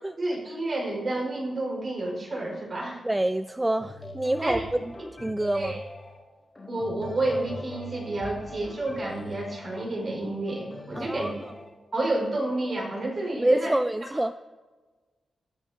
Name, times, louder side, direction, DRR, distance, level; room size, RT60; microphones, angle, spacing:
voice 1, 0.2-3.0 4.4-4.6 5.5-5.8 6.7-11.3 11.9-13.7, right 2 dB, 40° right, -1 dB, 5.0 m, -30 dB
voice 2, 3.0-4.6 4.9-5.0 5.2-5.8 11.0-11.3 13.4-14.3, right 1 dB, 10° right, 11 dB, 0.3 m, -26 dB
sound 1, 3.8-11.7, left 1 dB, 20° left, 3.9 m, -42 dB
24.5 x 14.0 x 2.8 m, 1.3 s
wide cardioid pair, 125°, 0 cm